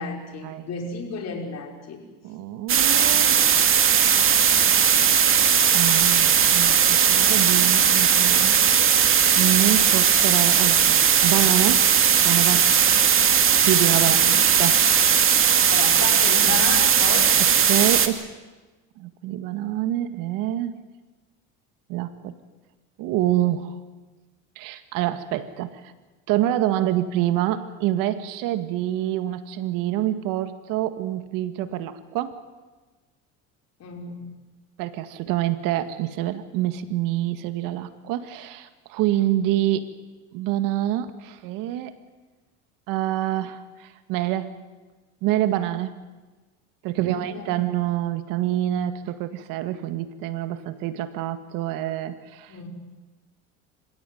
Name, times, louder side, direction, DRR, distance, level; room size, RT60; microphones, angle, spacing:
voice 1, 0.0-2.0 13.9-14.4 15.7-17.3 33.8-34.3 46.9-47.5 52.5-52.7, left 4 dB, 50° left, 2 dB, 5.6 m, -33 dB
voice 2, 2.2-3.4 5.7-8.7 9.4-11.9 12.2-12.7 13.6-14.2 14.6-14.8 17.7-18.3 19.0-20.8 21.9-22.4 23.0-23.8 24.6-25.9 26.3-32.4 34.8-39.9 40.3-42.0 42.9-44.6 45.2-45.9 46.8-52.5, right 13 dB, 70° right, 10 dB, 1.9 m, -26 dB
sound 1, 2.7-18.1, right 8 dB, 40° right, 2.3 m, -18 dB
27.0 x 16.0 x 9.4 m, 1.2 s
supercardioid pair, 95°, 34 cm